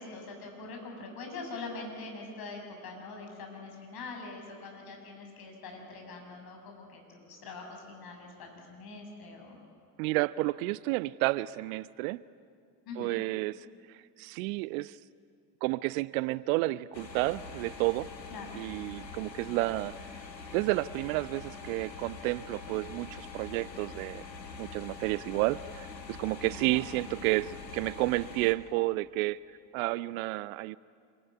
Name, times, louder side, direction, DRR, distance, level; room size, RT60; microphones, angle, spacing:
voice 1, 0.0-9.6 12.9-13.1 18.3-18.6 26.4-26.8, left 3 dB, 45° left, 2 dB, 7.5 m, -43 dB
voice 2, 10.0-12.2 13.0-13.7 14.2-15.0 15.6-18.1 18.5-19.9 20.5-24.2 24.6-29.4 29.7-30.8, right 20 dB, 55° right, 20 dB, 0.6 m, -31 dB
sound 1, 16.9-28.5, left 4 dB, 85° left, 1.7 m, -44 dB
26.0 x 23.0 x 9.9 m, 2.2 s
figure-of-eight pair, 60°, 49 cm